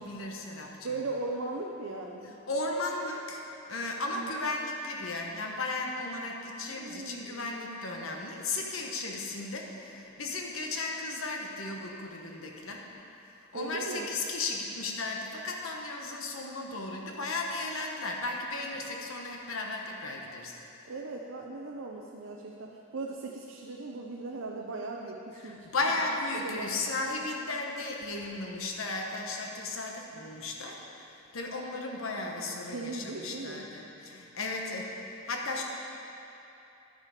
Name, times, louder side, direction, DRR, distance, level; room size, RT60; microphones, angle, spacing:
voice 1, 0.0-1.0 2.5-12.9 13.2-20.6 25.4-35.6, left 2 dB, 80° left, 0 dB, 1.2 m, -35 dB
voice 2, 0.8-2.3 4.1-4.3 6.7-7.5 13.5-14.1 20.9-25.7 26.4-26.8 32.7-33.7, right 3 dB, 70° right, 0 dB, 0.6 m, -38 dB
10.5 x 7.5 x 4.9 m, 2.9 s
head